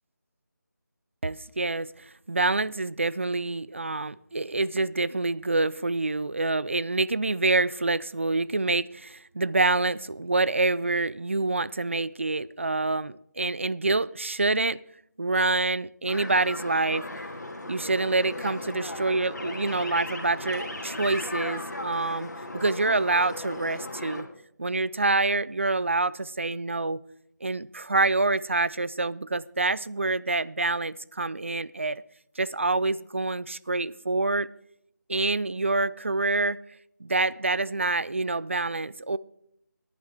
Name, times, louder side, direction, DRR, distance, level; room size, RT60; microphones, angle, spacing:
voice 1, 1.2-14.8 15.2-17.1 17.7-24.3 24.6-27.0 27.4-32.0 32.4-34.5 35.1-36.6 37.0-39.2, right 3 dB, 40° right, 0.3 m, -26 dB
sound 1, 16.1-24.2, left 2 dB, 65° left, 2.3 m, -36 dB
15.5 x 10.5 x 3.7 m
figure-of-eight pair, 175°, 10 cm